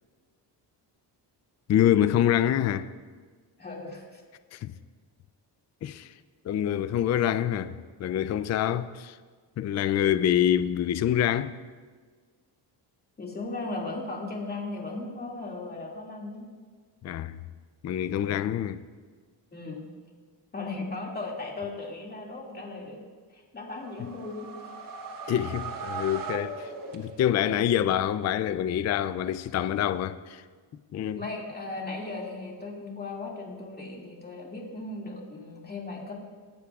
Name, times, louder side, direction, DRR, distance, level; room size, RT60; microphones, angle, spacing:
voice 1, 1.7-2.9 4.5-4.7 5.8-6.1 6.4-9.2 9.6-11.6 17.0-17.4 17.8-18.8 25.3-30.4 30.9-31.2, left 10 dB, 40° left, 0.4 m, -26 dB
voice 2, 3.6-4.2 13.2-16.5 18.2-18.5 19.5-19.8 20.5-23.0 23.3-24.5 31.1-36.1, left 3 dB, 20° left, 2.2 m, -37 dB
sound 1, 23.7-27.5, right 4 dB, 50° right, 1.3 m, -38 dB
22.5 x 11.5 x 2.4 m
cardioid pair, 135°, 42 cm